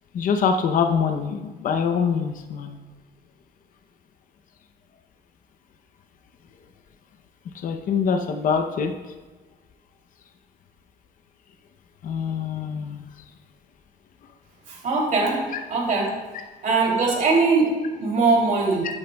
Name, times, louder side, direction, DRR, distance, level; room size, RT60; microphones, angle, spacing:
voice 1, 0.1-2.8 7.6-9.0 12.0-13.0, left 6 dB, 55° left, 5 dB, 0.7 m, -24 dB
voice 2, 14.7-16.1 16.6-18.9, right 3 dB, 50° right, -2 dB, 2.9 m, -21 dB
14.0 x 8.7 x 2.3 m, 1.3 s
cardioid pair, 110°, 17 cm